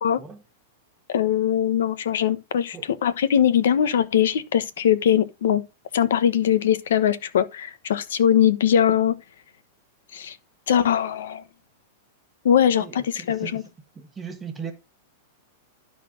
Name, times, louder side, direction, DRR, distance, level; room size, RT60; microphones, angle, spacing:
voice 1, 1.1-2.8 3.0-5.6 5.9-9.1 10.1-10.4 10.7-11.4 12.4-13.6, left 9 dB, 85° left, 1.1 m, -21 dB
voice 2, 12.8-13.7 13.9-14.7, right 6 dB, 15° right, 1.2 m, -38 dB
12.0 x 4.1 x 5.1 m
supercardioid pair, 140°, 0 cm